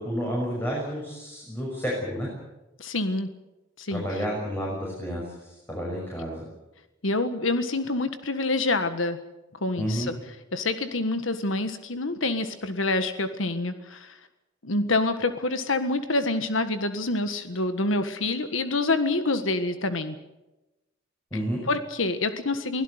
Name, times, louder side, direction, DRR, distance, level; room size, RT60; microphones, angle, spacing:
voice 1, 0.0-2.3 3.9-6.4 9.8-10.1 21.3-21.6, equal, 10° left, -3 dB, 6.5 m, -30 dB
voice 2, 2.8-3.3 3.8-4.0 7.0-9.2 9.6-10.1 10.5-14.2 14.6-20.2 21.7-22.8, left 2 dB, 75° left, 9 dB, 1.6 m, -27 dB
24.0 x 16.5 x 8.1 m, 1.0 s
head